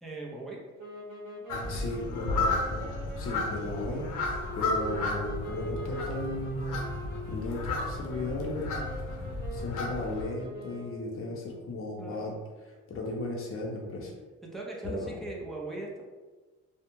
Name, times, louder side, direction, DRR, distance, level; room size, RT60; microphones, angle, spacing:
voice 1, 0.0-0.6 12.0-12.4 14.4-16.0, right 2 dB, ahead, -4 dB, 0.5 m, -39 dB
sound 1, 0.8-11.2, right 1 dB, 75° right, 0.8 m, -43 dB
sound 2, 1.5-10.2, left 3 dB, 90° left, 0.6 m, -33 dB
voice 2, 1.7-6.8 7.3-8.8 9.5-12.4 12.6-14.1 14.8-15.1, left 2 dB, 45° left, -1 dB, 0.7 m, -36 dB
2.3 x 2.1 x 2.9 m, 1.3 s
cardioid pair, 90°, 30 cm